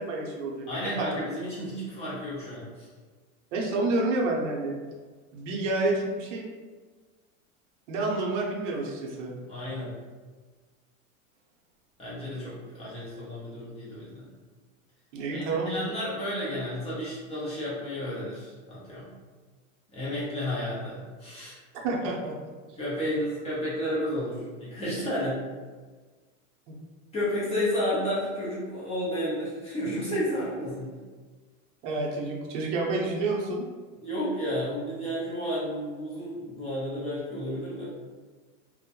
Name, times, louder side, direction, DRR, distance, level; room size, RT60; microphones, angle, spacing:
voice 1, 0.0-1.3 3.5-4.8 5.3-6.5 7.9-9.3 15.1-15.8 21.8-22.4 26.7-26.8 31.8-33.6, right 2 dB, 65° right, -1 dB, 0.7 m, -29 dB
voice 2, 0.7-2.9 9.5-10.0 12.0-14.3 15.3-19.1 19.9-21.6 22.8-25.4 27.1-30.9 34.0-37.9, equal, 15° left, -8 dB, 0.6 m, -32 dB
2.1 x 2.1 x 2.8 m, 1.4 s
supercardioid pair, 135°, 41 cm